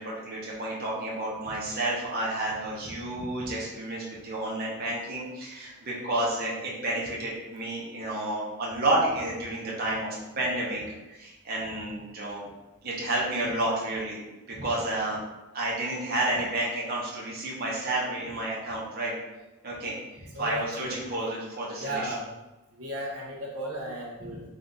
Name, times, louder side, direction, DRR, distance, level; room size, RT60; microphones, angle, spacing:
voice 1, 0.0-10.8 11.1-12.4 12.8-14.2 14.5-15.2 15.5-19.1 19.6-19.9 20.4-22.1, right 1 dB, 45° right, -5 dB, 0.8 m, -30 dB
voice 2, 20.3-21.0 21.8-22.3 22.8-24.4, right 1 dB, 85° right, -3 dB, 0.9 m, -35 dB
3.9 x 2.6 x 3.6 m, 1.0 s
head